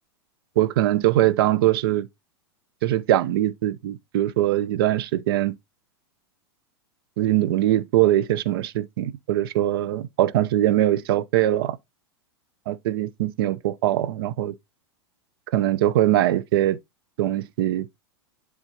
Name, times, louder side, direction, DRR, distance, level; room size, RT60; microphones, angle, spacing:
voice 1, 0.6-2.1 2.8-5.5 7.2-11.8 12.7-14.5 15.5-16.8 17.2-17.9, right 13 dB, 60° right, 0.6 m, -22 dB
10.5 x 3.7 x 2.8 m
figure-of-eight pair, 90°, 14 cm